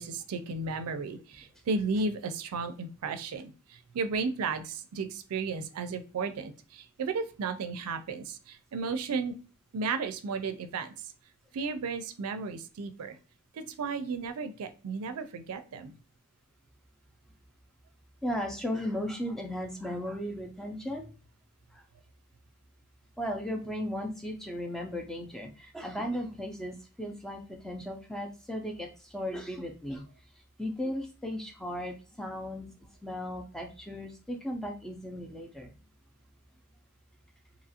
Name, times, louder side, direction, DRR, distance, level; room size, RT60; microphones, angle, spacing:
voice 1, 0.0-9.4 9.7-11.1 11.5-13.2 13.5-15.9, right 4 dB, 90° right, 9 dB, 0.4 m, -34 dB
voice 2, 18.2-21.1 21.7-21.8 23.2-30.0 30.6-32.7 33.0-35.7, equal, ahead, 2 dB, 0.4 m, -36 dB
2.8 x 2.4 x 2.7 m, 0.35 s
head